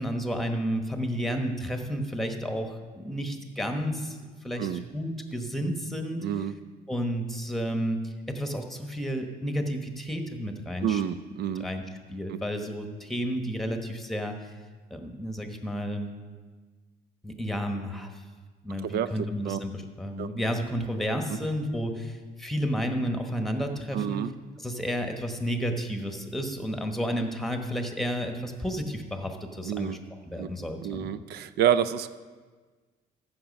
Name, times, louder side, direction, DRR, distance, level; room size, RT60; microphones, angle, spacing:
voice 1, 0.0-4.2 4.4-6.2 6.9-11.0 11.6-11.8 12.1-14.5 14.9-16.1 17.2-18.2 18.6-24.2 24.6-30.0 30.3-31.1, equal, ahead, 4 dB, 1.2 m, -31 dB
voice 2, 6.2-6.5 10.8-11.6 18.8-19.1 19.5-19.6 20.2-20.3 21.3-21.4 23.9-24.3 29.6-30.0 30.4-30.5 30.8-32.2, right 10 dB, 70° right, 14 dB, 0.5 m, -28 dB
14.5 x 6.0 x 5.3 m, 1.4 s
cardioid pair, 110°, 17 cm